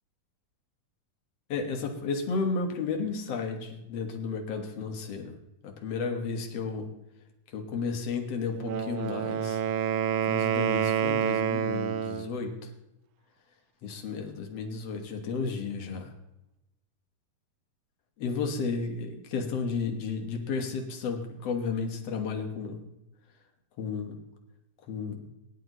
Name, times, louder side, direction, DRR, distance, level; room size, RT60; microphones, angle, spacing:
voice 1, 1.5-5.3 5.6-6.9 7.5-9.6 10.3-12.7 13.8-16.1 18.2-22.8 23.8-24.2 24.9-25.2, left 4 dB, 55° left, 3 dB, 2.0 m, -33 dB
Wind instrument woodwind instrument, 8.5-12.3, right 8 dB, 85° right, 2.5 m, -28 dB
18.0 x 10.5 x 3.0 m, 0.90 s
omnidirectional pair, 4.0 m